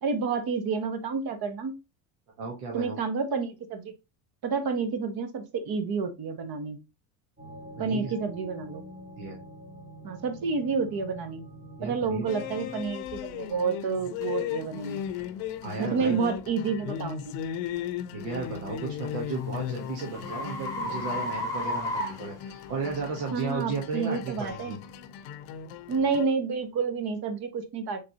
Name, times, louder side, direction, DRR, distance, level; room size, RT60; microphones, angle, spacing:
voice 1, 0.0-1.7 2.7-3.9 4.4-6.8 7.8-8.8 10.0-11.4 11.8-15.0 15.8-17.3 20.8-20.9 23.3-24.8 25.9-28.0, right 5 dB, 45° right, 8 dB, 1.1 m, -29 dB
voice 2, 2.4-3.0 7.8-8.1 9.2-9.4 11.8-12.2 15.6-16.2 18.1-24.8, right 4 dB, 85° right, -1 dB, 1.2 m, -34 dB
sound 1, 7.4-12.8, equal, 20° right, 1.8 m, -46 dB
sound 2, 12.3-26.2, left 10 dB, 70° left, 0.6 m, -37 dB
sound 3, 14.2-14.3 14.9-15.1 15.7-15.9 18.5-23.0, left 1 dB, 5° left, 1.7 m, -34 dB
3.9 x 3.4 x 2.8 m, 0.26 s
supercardioid pair, 100°, 49 cm